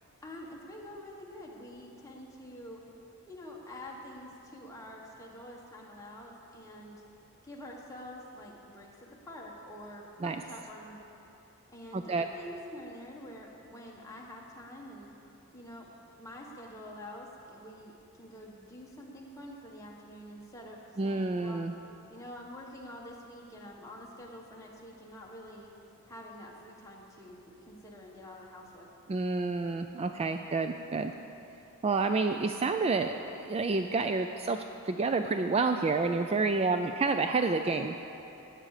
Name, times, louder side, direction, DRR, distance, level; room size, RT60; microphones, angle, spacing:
voice 1, 0.2-2.8 3.3-7.0 7.4-11.0 11.7-15.1 15.5-21.6 22.1-25.7 26.1-28.9, left 1 dB, 15° left, -2 dB, 1.5 m, -47 dB
voice 2, 11.9-12.2 21.0-21.7 29.1-31.1 31.8-34.6 34.8-38.0, right 3 dB, 25° right, 7 dB, 0.3 m, -29 dB
16.5 x 9.1 x 4.9 m, 3.0 s
head